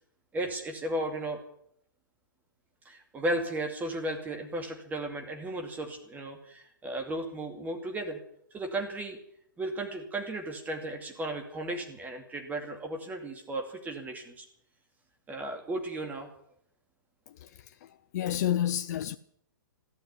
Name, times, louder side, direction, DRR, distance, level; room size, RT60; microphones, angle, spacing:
voice 1, 0.3-1.4 2.8-8.2 8.5-9.2 9.6-14.5 15.3-16.3, right 1 dB, 15° right, 2.5 m, -35 dB
voice 2, 17.3-19.2, left 11 dB, 50° left, 0.6 m, -31 dB
14.5 x 11.5 x 8.3 m
figure-of-eight pair, 115°, 11 cm